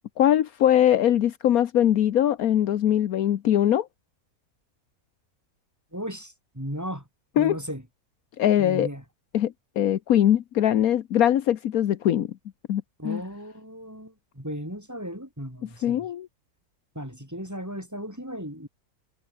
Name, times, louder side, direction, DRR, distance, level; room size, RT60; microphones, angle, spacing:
voice 1, 0.2-3.9 7.4-7.6 8.4-8.9 9.3-12.3 12.7-13.2 15.8-16.3, left 11 dB, 75° left, 1.3 m, -22 dB
voice 2, 5.9-7.0 7.4-7.8 8.6-9.0 13.0-16.1 16.9-18.7, equal, 10° right, 7.9 m, -36 dB
omnidirectional pair, 1.6 m